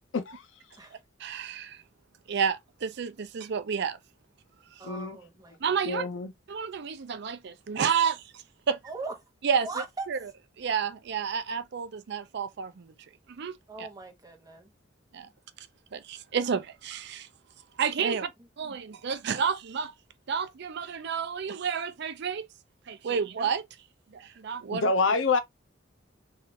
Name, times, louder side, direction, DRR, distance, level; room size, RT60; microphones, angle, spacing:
voice 1, 0.1-0.5 4.8-5.2 5.8-6.3 24.7-25.4, left 4 dB, 75° left, 0.6 m, -26 dB
voice 2, 0.9-1.8 2.3-4.0 5.6-6.0 6.5-8.2 8.7-8.8 9.4-9.7 10.1-10.2 10.6-12.9 13.3-13.9 15.1-15.3 15.9-17.3 17.8-18.3 18.6-19.9 20.3-22.4 22.9-23.6 24.1-24.9, right 6 dB, 60° right, 0.5 m, -30 dB
voice 3, 4.8-5.8 8.8-9.2 9.6-10.1 13.7-14.7 18.1-18.2, right 3 dB, 20° right, 0.9 m, -39 dB
3.2 x 2.4 x 2.8 m
head